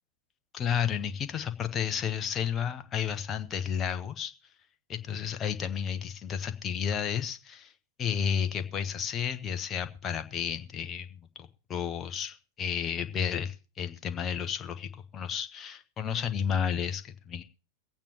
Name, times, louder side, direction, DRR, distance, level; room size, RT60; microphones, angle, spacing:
voice 1, 0.5-4.3 4.9-7.7 8.0-17.4, left 8 dB, 25° left, 8 dB, 1.0 m, -32 dB
23.0 x 8.8 x 2.9 m, 0.32 s
figure-of-eight pair, 90°, 0 cm